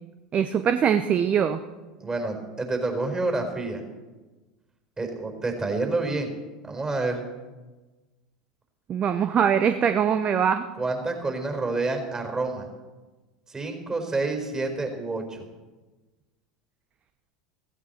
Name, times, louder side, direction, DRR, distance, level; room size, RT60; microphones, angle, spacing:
voice 1, 0.3-1.6 8.9-10.6, right 8 dB, 35° right, 10 dB, 0.8 m, -22 dB
voice 2, 2.0-3.8 5.0-6.3 6.6-7.2 10.8-12.7 13.5-15.4, right 3 dB, 20° right, 4 dB, 4.5 m, -28 dB
16.0 x 15.5 x 4.5 m, 1.2 s
hypercardioid pair, 80°, 4 cm